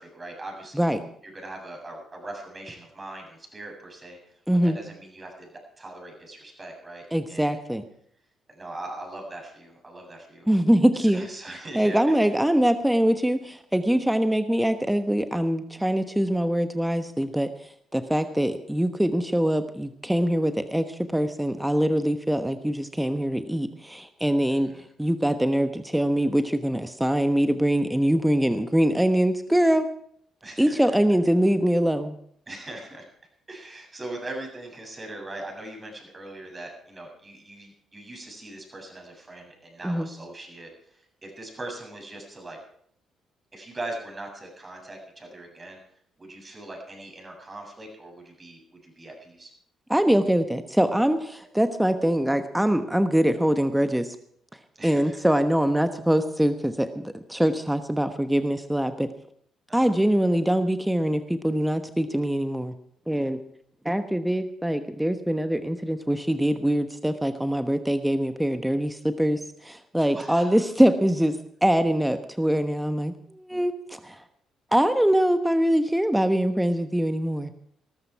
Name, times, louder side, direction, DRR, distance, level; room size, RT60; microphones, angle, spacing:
voice 1, 0.0-4.2 4.6-5.5 5.8-7.6 8.5-10.5 10.9-12.3 24.5-24.9 30.4-31.0 32.5-33.1 33.5-42.6 43.5-45.8 46.2-49.5 54.8-55.2 59.7-59.9 70.0-70.6, right 2 dB, 30° right, 2 dB, 7.6 m, -41 dB
voice 2, 4.5-4.8 7.1-7.8 10.5-11.3 11.7-29.9 30.6-32.2 39.8-40.1 49.9-54.2 54.8-59.1 59.7-62.7 63.1-63.4 63.8-74.2 74.7-77.5, equal, 5° right, 9 dB, 1.1 m, -23 dB
18.5 x 14.0 x 4.8 m, 0.65 s
hypercardioid pair, 50°, 0 cm